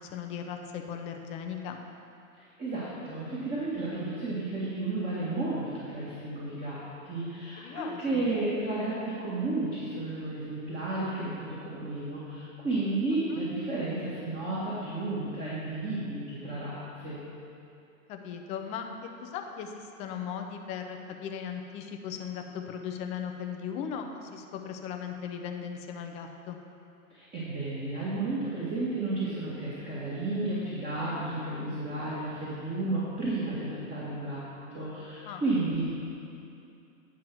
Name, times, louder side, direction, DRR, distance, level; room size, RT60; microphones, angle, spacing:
voice 1, 0.0-1.8 7.6-8.3 13.2-13.4 18.1-18.9 19.2-26.6 35.3-35.4, left 7 dB, 20° left, 4 dB, 0.3 m, -38 dB
voice 2, 2.6-17.2 27.1-35.9, right 2 dB, 20° right, -8 dB, 1.7 m, -32 dB
9.3 x 4.7 x 6.1 m, 2.6 s
hypercardioid pair, 115°, 41 cm